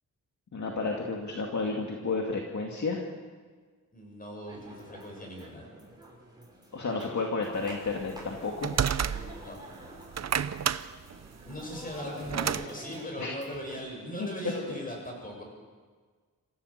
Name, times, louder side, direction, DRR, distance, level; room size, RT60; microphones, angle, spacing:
voice 1, 0.5-3.0 6.7-8.7 13.2-13.3 14.2-14.3 14.7-14.8, left 3 dB, 60° left, 0 dB, 2.4 m, -31 dB
voice 2, 3.9-5.7 9.0-9.6 11.4-15.4, equal, 25° left, 0 dB, 7.6 m, -39 dB
sound 1, 4.5-13.8, right 1 dB, 10° right, 6.2 m, -48 dB
sound 2, 7.9-9.6 10.0-12.7, right 8 dB, 55° right, 0.7 m, -30 dB
26.5 x 15.5 x 6.7 m, 1.5 s
wide cardioid pair, 105°, 32 cm